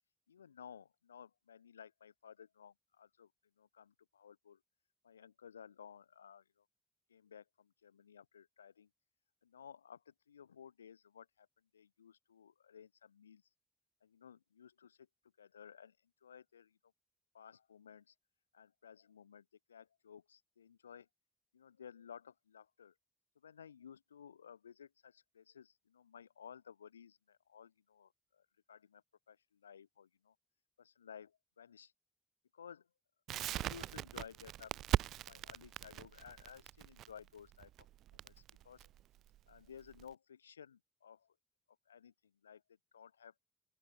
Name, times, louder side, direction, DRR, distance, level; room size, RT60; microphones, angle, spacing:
voice 1, 0.3-3.3 3.6-4.6 5.0-6.6 7.1-8.9 9.4-11.5 11.7-13.4 14.0-15.0 15.4-16.0 16.2-16.8 17.3-18.1 18.5-21.1 21.5-22.9 23.4-29.0 29.3-30.3 30.8-31.9 32.5-32.9 33.5-37.7 38.1-38.9 39.5-41.3 41.9-42.1 42.4-42.6 42.9-43.3, left 8 dB, 85° left, 4.7 m, -56 dB
Crackle, 33.3-40.1, right 13 dB, 65° right, 2.0 m, -40 dB
open air
figure-of-eight pair, 45°, 0 cm